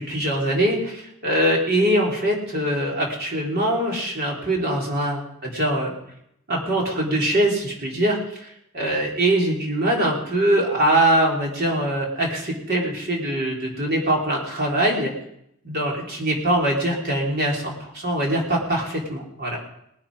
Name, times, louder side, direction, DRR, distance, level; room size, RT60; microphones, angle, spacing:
voice 1, 0.0-5.9 6.5-15.1 15.6-19.6, right 1 dB, 45° right, -2 dB, 3.8 m, -23 dB
19.5 x 9.8 x 5.0 m, 0.77 s
head